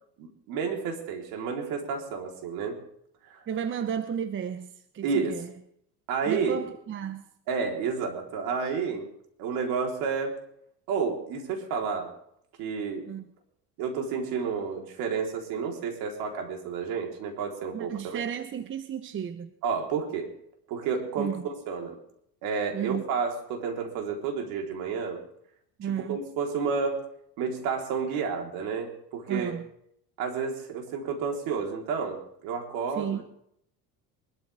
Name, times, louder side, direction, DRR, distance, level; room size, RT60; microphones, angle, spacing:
voice 1, 0.2-2.8 3.3-3.5 5.0-5.4 6.1-6.6 7.5-9.1 9.4-10.4 10.9-12.1 12.6-13.1 13.8-18.2 19.6-20.3 20.7-22.0 22.4-25.2 26.1-27.1 27.4-29.5 30.2-33.2, right 5 dB, 70° right, 1 dB, 4.0 m, -30 dB
voice 2, 3.5-5.5 6.3-7.2 13.1-13.2 17.7-19.5 21.2-21.4 22.7-23.0 25.8-26.2 29.3-29.7 33.0-33.2, right 8 dB, 30° right, 10 dB, 0.9 m, -33 dB
23.0 x 13.0 x 3.6 m, 0.71 s
supercardioid pair, 115°, 37 cm